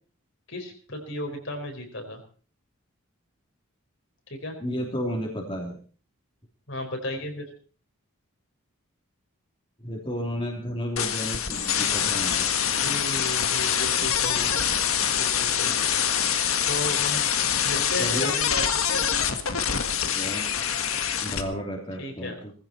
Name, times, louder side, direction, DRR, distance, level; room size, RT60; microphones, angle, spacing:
voice 1, 0.5-2.2 4.3-4.5 6.7-7.5 12.8-14.6 15.2-15.8 16.7-17.2 17.6-19.1 22.0-22.4, left 1 dB, 60° left, 3 dB, 4.6 m, -34 dB
voice 2, 4.6-5.8 9.8-12.5 18.0-18.3 20.1-20.4 21.2-22.5, equal, 25° left, -1 dB, 3.2 m, -32 dB
sound 1, 11.0-21.4, left 8 dB, 75° left, 1.7 m, -25 dB
19.5 x 15.5 x 4.5 m, 0.41 s
head